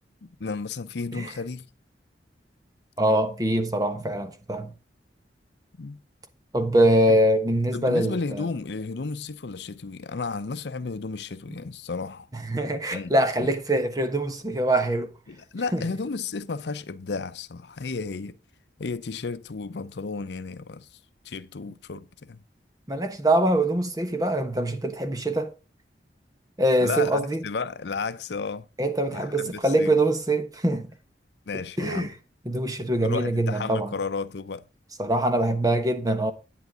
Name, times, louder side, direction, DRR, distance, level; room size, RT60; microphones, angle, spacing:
voice 1, 0.2-1.7 5.8-6.0 7.1-7.2 7.7-12.3 12.9-13.5 15.3-18.4 18.8-20.9 21.2-22.4 26.8-28.7 29.1-30.0 31.5-32.1 33.0-34.6, left 4 dB, 70° left, 0.6 m, -33 dB
voice 2, 3.0-4.7 6.5-8.4 12.3-15.1 15.7-15.8 22.9-25.5 26.6-27.4 28.8-30.9 31.8-32.1 32.4-33.9 35.0-36.3, right 1 dB, 20° right, 1.2 m, -23 dB
11.0 x 9.2 x 3.7 m
head